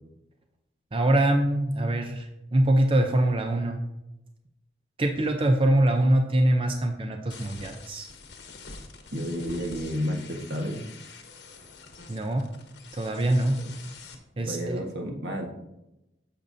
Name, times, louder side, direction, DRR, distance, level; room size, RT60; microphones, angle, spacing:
voice 1, 0.9-3.8 5.0-8.1 12.1-12.5 12.9-13.6 14.4-14.8, right 1 dB, 30° right, 4 dB, 0.5 m, -23 dB
sound 1, 7.3-14.1, left 4 dB, 85° left, 1.2 m, -46 dB
voice 2, 9.1-10.8 14.4-15.5, equal, 75° right, 1 dB, 1.5 m, -31 dB
10.5 x 7.0 x 2.7 m, 0.92 s
head